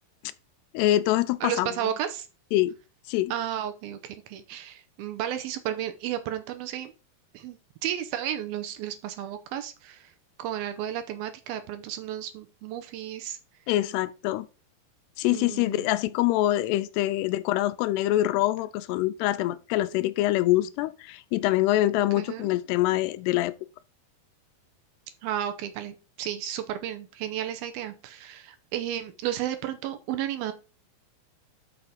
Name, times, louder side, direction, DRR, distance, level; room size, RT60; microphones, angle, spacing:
voice 1, 0.7-1.7 2.5-2.7 3.1-3.3 13.7-14.5 15.2-23.5, left 15 dB, 85° left, 2.6 m, -25 dB
voice 2, 1.4-2.3 3.3-6.9 7.3-10.1 10.4-13.4 15.3-15.9 22.0-22.5 25.2-30.5, right 11 dB, 75° right, 2.4 m, -33 dB
7.1 x 5.6 x 4.9 m
omnidirectional pair, 4.7 m